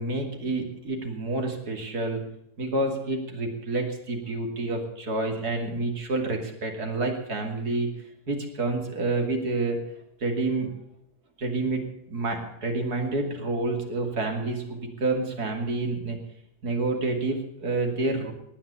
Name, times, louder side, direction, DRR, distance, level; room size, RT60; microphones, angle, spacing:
voice 1, 0.0-2.2 2.6-7.9 8.3-9.8 10.2-10.7 11.4-11.8 12.1-16.2 16.6-18.3, right 2 dB, 65° right, 3 dB, 3.2 m, -28 dB
18.5 x 9.6 x 7.0 m, 0.78 s
omnidirectional pair, 1.8 m